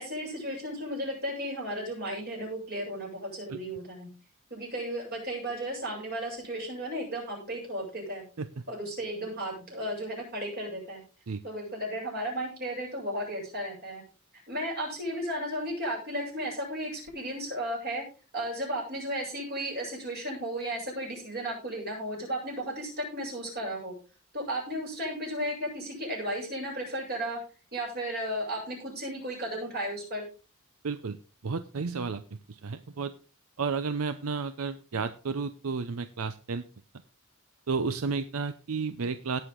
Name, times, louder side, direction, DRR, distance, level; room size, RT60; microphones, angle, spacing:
voice 1, 0.0-4.1 4.5-8.2 8.7-11.0 11.4-14.0 14.5-18.1 18.3-23.9 24.3-27.4 27.7-30.2, equal, 50° right, -2 dB, 7.6 m, -34 dB
voice 2, 30.8-31.2 31.4-32.2 32.5-33.1 33.6-36.6 37.7-39.4, right 4 dB, 85° right, 11 dB, 0.6 m, -32 dB
17.5 x 6.5 x 3.8 m, 0.35 s
head